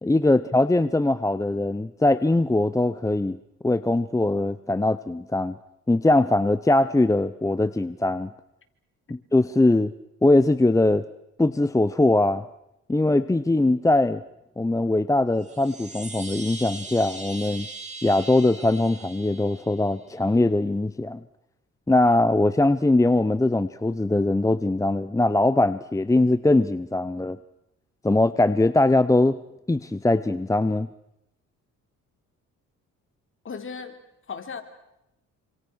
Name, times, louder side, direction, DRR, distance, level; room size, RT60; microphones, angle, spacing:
voice 1, 0.0-3.4 3.6-5.6 5.9-8.3 9.1-9.9 10.2-11.0 11.4-12.4 12.9-14.2 14.6-17.7 18.0-21.2 21.9-27.4 28.0-29.4 29.7-30.9, left 2 dB, 10° left, 14 dB, 0.9 m, -21 dB
Chime, 15.3-20.0, right 3 dB, 20° right, 7.7 m, -40 dB
voice 2, 33.4-34.0 34.3-34.6, left 5 dB, 45° left, 6 dB, 3.9 m, -36 dB
27.5 x 26.5 x 6.4 m, 0.84 s
cardioid pair, 90°, 30 cm